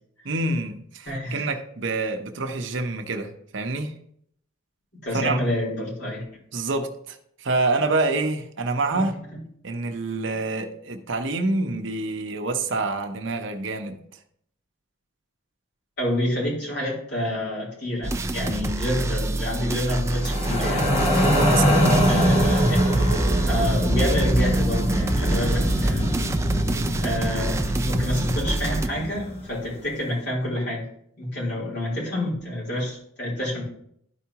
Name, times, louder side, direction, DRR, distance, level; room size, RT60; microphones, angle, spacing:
voice 1, 0.2-3.9 5.1-5.4 6.5-9.1 9.6-14.0 21.5-22.0, right 3 dB, 60° right, 0.8 m, -27 dB
voice 2, 1.0-1.4 5.0-6.2 8.9-9.4 16.0-20.9 22.1-23.1 23.4-26.1 27.0-30.9 31.2-33.6, left 1 dB, 55° left, 3.4 m, -28 dB
sound 1, 18.0-28.9, right 2 dB, 15° right, 0.3 m, -27 dB
sound 2, 20.0-28.4, equal, 5° left, 3.1 m, -40 dB
sound 3, 20.2-29.5, equal, 30° left, 1.3 m, -23 dB
12.5 x 4.7 x 2.9 m
head